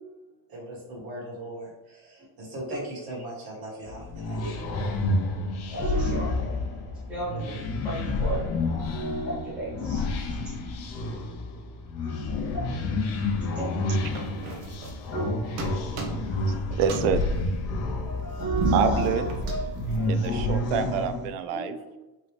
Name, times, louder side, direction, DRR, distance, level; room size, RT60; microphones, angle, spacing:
voice 1, 0.5-4.6, right 1 dB, 45° right, -4 dB, 1.5 m, -39 dB
sound 1, 3.8-21.3, left 2 dB, 35° left, 0.4 m, -30 dB
voice 2, 5.2-6.6 7.1-8.5 8.9-10.0 12.0-13.1 13.5-14.0 15.1-15.4 18.0-19.6 19.9-20.2 21.5-21.8, right 2 dB, ahead, -9 dB, 1.3 m, -34 dB
sound 2, 14.1-15.3 15.6-16.5 16.8-20.6, right 3 dB, 70° right, 1.0 m, -32 dB
voice 3, 16.1-17.3 18.7-19.3 20.1-21.8, right 7 dB, 90° right, 10 dB, 0.5 m, -27 dB
3.9 x 3.1 x 3.2 m, 1.0 s
cardioid pair, 170°, 49 cm